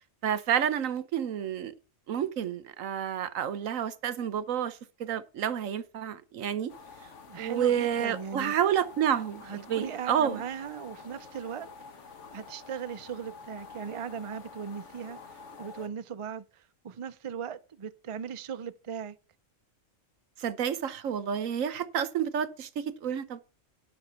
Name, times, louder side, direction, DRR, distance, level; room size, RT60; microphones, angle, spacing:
voice 1, 0.2-1.7 2.1-6.7 7.4-10.4 20.4-23.4, right 9 dB, 85° right, 1.3 m, -29 dB
sound 1, 6.7-15.9, left 4 dB, 65° left, 1.6 m, -48 dB
voice 2, 7.3-8.5 9.4-11.7 12.3-19.2, right 7 dB, 40° right, 0.5 m, -38 dB
10.0 x 6.2 x 5.6 m
omnidirectional pair, 1.3 m